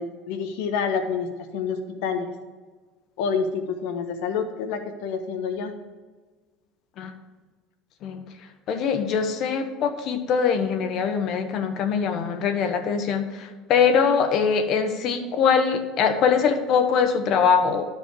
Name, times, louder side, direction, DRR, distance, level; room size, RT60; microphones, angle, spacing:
voice 1, 0.0-2.3 3.2-5.7, left 5 dB, 75° left, 6 dB, 1.3 m, -28 dB
voice 2, 8.7-17.8, left 6 dB, 50° left, 7 dB, 1.2 m, -22 dB
12.0 x 5.2 x 4.7 m, 1.3 s
cardioid pair, 135°, 0 cm